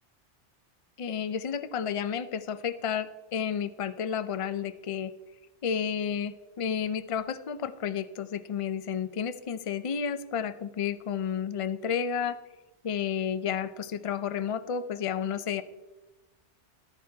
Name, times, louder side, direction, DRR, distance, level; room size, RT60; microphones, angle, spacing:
voice 1, 1.0-5.1 5.6-12.4 12.8-15.6, left 7 dB, 45° left, 12 dB, 0.4 m, -31 dB
13.5 x 12.5 x 2.8 m, 1.1 s
omnidirectional pair, 1.2 m